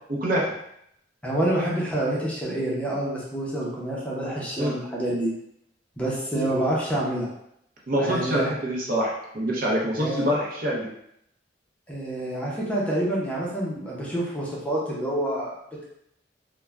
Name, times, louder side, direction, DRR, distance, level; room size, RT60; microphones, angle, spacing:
voice 1, 0.1-0.5 4.6-4.8 6.3-6.5 7.9-10.9, equal, 50° right, -3 dB, 0.6 m, -25 dB
voice 2, 1.2-5.3 6.0-7.3 8.0-8.5 10.0-10.3 11.9-15.6, right 1 dB, 5° left, -5 dB, 0.5 m, -27 dB
2.3 x 2.1 x 3.2 m, 0.75 s
head